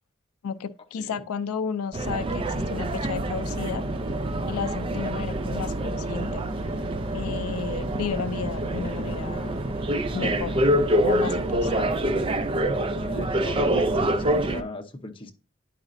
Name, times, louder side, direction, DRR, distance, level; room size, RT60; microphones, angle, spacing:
voice 1, 0.4-3.8 4.4-6.4 7.1-9.6 10.1-10.6 11.0-11.9, left 6 dB, 85° left, 0.4 m, -33 dB
voice 2, 1.0-1.3 13.0-15.3, left 2 dB, 25° left, 0.8 m, -37 dB
sound 1, 1.9-14.6, right 1 dB, 25° right, 0.4 m, -26 dB
sound 2, 2.1-12.3, right 1 dB, 75° right, 1.0 m, -46 dB
9.6 x 5.0 x 2.5 m
head